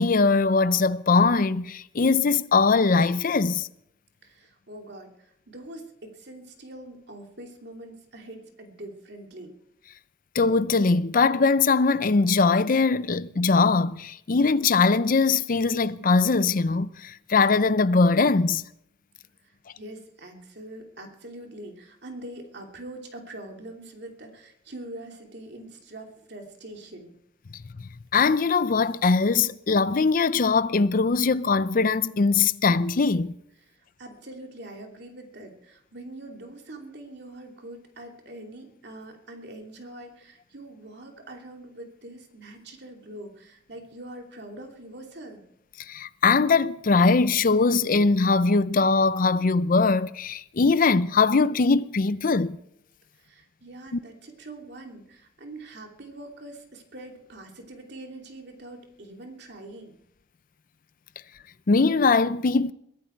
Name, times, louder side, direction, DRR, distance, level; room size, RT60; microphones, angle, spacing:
voice 1, 0.0-3.7 10.3-18.6 28.1-33.3 45.9-52.6 61.7-62.7, left 4 dB, 45° left, 0.5 m, -21 dB
voice 2, 4.2-9.5 19.4-27.1 33.7-45.4 53.1-60.0, right 1 dB, 60° right, 2.9 m, -43 dB
22.0 x 14.0 x 4.6 m
head